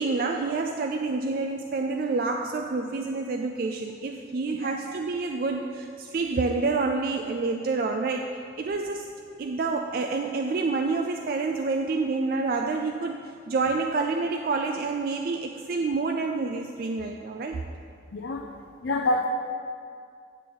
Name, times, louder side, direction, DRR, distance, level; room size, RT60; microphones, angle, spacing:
voice 1, 0.0-9.1 9.4-17.6 18.5-18.6, right 3 dB, 50° right, 4 dB, 0.3 m, -28 dB
voice 2, 18.1-18.5 18.8-19.3, left 2 dB, 70° left, 3 dB, 0.5 m, -26 dB
9.4 x 6.9 x 3.7 m, 2.3 s
head